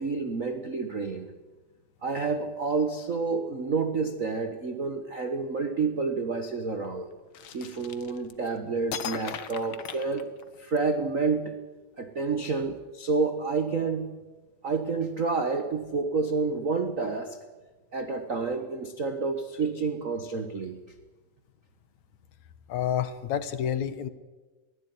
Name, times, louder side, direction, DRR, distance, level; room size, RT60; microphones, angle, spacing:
voice 1, 0.0-1.3 2.0-7.1 7.5-10.3 10.6-11.6 12.0-14.1 14.6-17.4 17.9-20.8, right 4 dB, 70° right, 7 dB, 0.7 m, -29 dB
sound 1, 7.3-8.5 8.9-10.8, left 8 dB, 55° left, 1.6 m, -38 dB
voice 2, 22.7-24.1, left 9 dB, 70° left, 13 dB, 2.4 m, -29 dB
22.5 x 16.0 x 9.5 m, 1.3 s
omnidirectional pair, 3.6 m